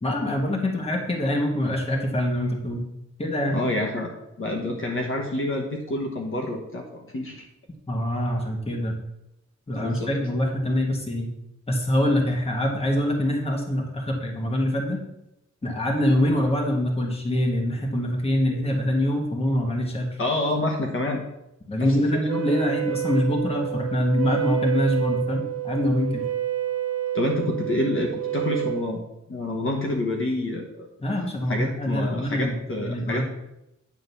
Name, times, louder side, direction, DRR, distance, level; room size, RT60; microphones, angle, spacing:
voice 1, 0.0-2.8 3.2-3.6 7.9-9.0 9.7-11.3 11.7-15.0 15.6-20.1 21.7-26.2 31.0-33.2, left 1 dB, 20° left, 1 dB, 1.3 m, -24 dB
voice 2, 3.5-4.1 4.4-7.5 9.7-10.1 20.2-21.2 21.8-21.9 27.1-29.0 29.3-30.9 31.5-33.2, left 1 dB, 45° left, 1 dB, 1.2 m, -28 dB
Wind instrument woodwind instrument, 22.3-28.9, right 12 dB, 55° right, 0.8 m, -29 dB
9.4 x 3.8 x 6.8 m, 0.86 s
wide cardioid pair, 180°, 30 cm